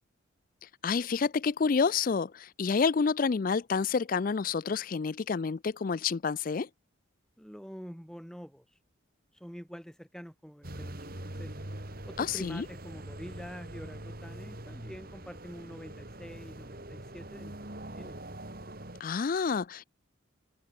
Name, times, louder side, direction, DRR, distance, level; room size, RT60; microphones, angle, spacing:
voice 1, 0.8-6.7 12.2-12.6 19.0-19.8, left 5 dB, 40° left, 0.4 m, -29 dB
voice 2, 7.4-8.8 9.3-11.5 12.1-18.2, equal, 5° left, 5.0 m, -46 dB
sound 1, 10.6-19.0, right 1 dB, 45° right, 2.8 m, -43 dB
head